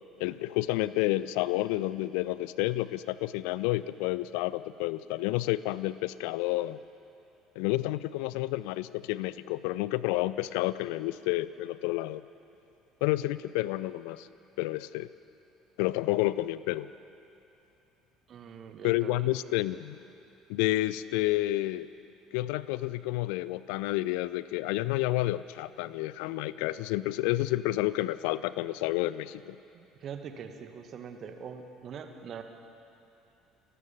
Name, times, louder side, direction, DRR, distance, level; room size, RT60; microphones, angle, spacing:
voice 1, 0.2-6.8 7.6-12.2 13.0-14.3 14.6-15.1 15.8-16.9 18.8-20.0 20.5-21.9 22.3-29.6, left 17 dB, 60° left, 17 dB, 0.5 m, -30 dB
voice 2, 18.3-19.3 29.7-32.4, right 7 dB, 45° right, 6 dB, 1.9 m, -43 dB
30.0 x 13.5 x 7.5 m, 2.8 s
figure-of-eight pair, 60°, 0 cm